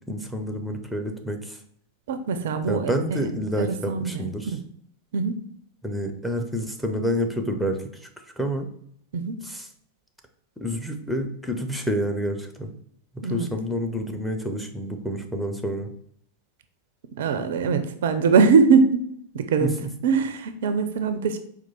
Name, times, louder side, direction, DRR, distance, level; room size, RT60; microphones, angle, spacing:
voice 1, 0.1-1.6 2.7-4.5 5.8-8.1 8.4-8.7 9.4-9.7 10.6-12.7 13.3-15.9 19.6-19.9, equal, ahead, 4 dB, 0.6 m, -28 dB
voice 2, 2.1-3.2 3.6-4.6 5.1-5.5 9.1-9.4 13.2-13.5 17.2-19.1 19.3-19.7 20.0-21.4, right 5 dB, 55° right, 9 dB, 0.4 m, -22 dB
4.5 x 2.4 x 4.0 m, 0.67 s
figure-of-eight pair, 90°, 0 cm